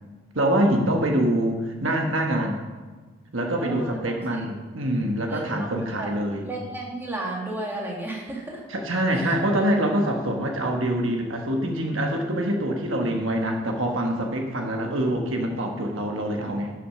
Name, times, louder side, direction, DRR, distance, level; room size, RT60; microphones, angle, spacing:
voice 1, 0.3-2.6 3.3-6.5 8.7-16.7, right 1 dB, 65° right, 2 dB, 1.2 m, -25 dB
voice 2, 3.6-4.6 5.3-6.1 6.4-8.6 9.1-9.3, right 2 dB, 10° right, -2 dB, 1.8 m, -34 dB
11.5 x 6.4 x 5.6 m, 1.3 s
head